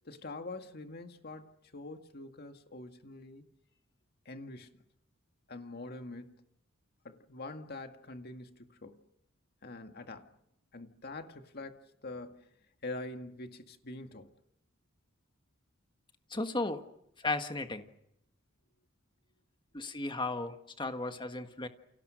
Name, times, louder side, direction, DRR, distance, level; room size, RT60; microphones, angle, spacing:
voice 1, 0.0-3.5 4.3-4.7 5.5-6.4 7.0-9.0 9.6-10.3 10.7-12.5 12.8-14.3, left 2 dB, 50° left, 2.0 m, -45 dB
voice 2, 16.3-16.8 17.2-17.9 19.7-21.7, left 2 dB, 25° left, 1.6 m, -35 dB
29.0 x 28.5 x 6.4 m
head